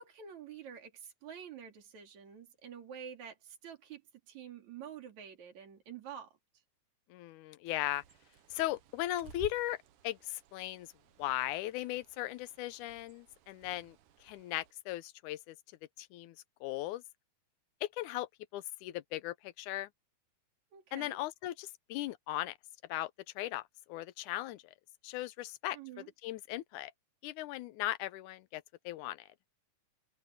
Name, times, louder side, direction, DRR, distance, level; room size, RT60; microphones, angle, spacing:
voice 1, 0.0-4.0 4.3-6.3 20.7-21.2 25.7-26.1, right 8 dB, 65° right, 4.4 m, -48 dB
voice 2, 7.1-8.0 8.5-9.8 10.0-10.9 11.2-15.6 16.0-16.4 16.6-17.0 17.8-19.9 20.9-22.5 22.9-24.6 25.0-25.8 26.2-26.9 27.2-29.3, left 15 dB, 90° left, 2.1 m, -38 dB
Bird, 7.6-14.7, right 8 dB, 85° right, 2.8 m, -56 dB
omnidirectional pair, 3.5 m